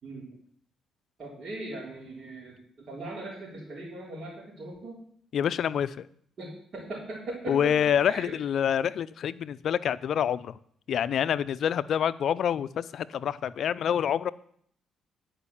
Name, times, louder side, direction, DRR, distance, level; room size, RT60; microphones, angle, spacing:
voice 1, 1.2-5.0 6.4-8.3, right 2 dB, 50° right, -6 dB, 3.7 m, -39 dB
voice 2, 5.3-6.1 7.5-10.6 10.9-14.3, left 9 dB, 65° left, 16 dB, 0.4 m, -27 dB
10.0 x 5.3 x 7.1 m, 0.63 s
cardioid pair, 90°, 0 cm